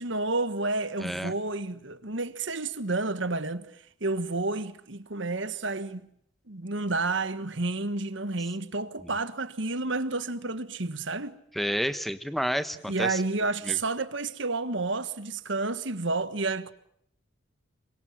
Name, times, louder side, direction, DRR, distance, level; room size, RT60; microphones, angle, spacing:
voice 1, 0.0-3.7 4.0-6.0 6.5-11.4 12.8-16.7, right 3 dB, 65° right, 1.5 m, -30 dB
voice 2, 1.0-1.3 11.5-13.2 13.7-13.8, equal, ahead, 1.1 m, -30 dB
27.0 x 23.0 x 7.4 m
head